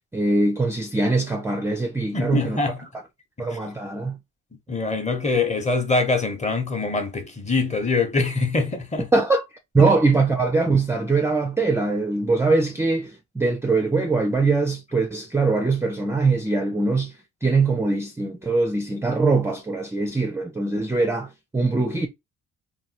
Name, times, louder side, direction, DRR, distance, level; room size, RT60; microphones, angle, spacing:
voice 1, 0.1-2.6 3.4-4.2 9.1-9.5 9.7-17.1 17.4-22.1, right 3 dB, 10° right, 0.3 m, -22 dB
voice 2, 2.1-2.8 3.4-3.6 4.7-9.1 9.8-9.9, left 3 dB, 25° left, 0.8 m, -24 dB
3.0 x 2.3 x 2.7 m
cardioid pair, 90°, 30 cm